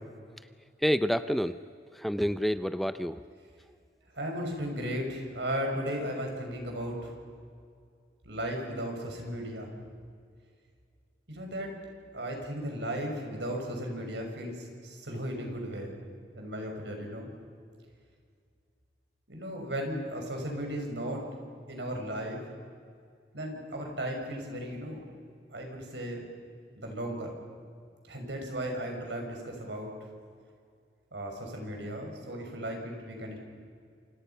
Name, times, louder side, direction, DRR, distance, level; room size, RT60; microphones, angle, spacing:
voice 1, 0.8-1.6 1.9-3.2, equal, ahead, 12 dB, 0.5 m, -28 dB
voice 2, 4.1-7.1 8.2-9.7 11.3-11.7 12.1-16.0 16.3-17.3 19.3-21.2 21.7-22.4 23.3-25.1 25.5-26.3 26.8-27.3 28.0-29.9 31.1-33.4, equal, 85° right, 2 dB, 5.9 m, -35 dB
28.0 x 27.0 x 5.7 m, 2.2 s
head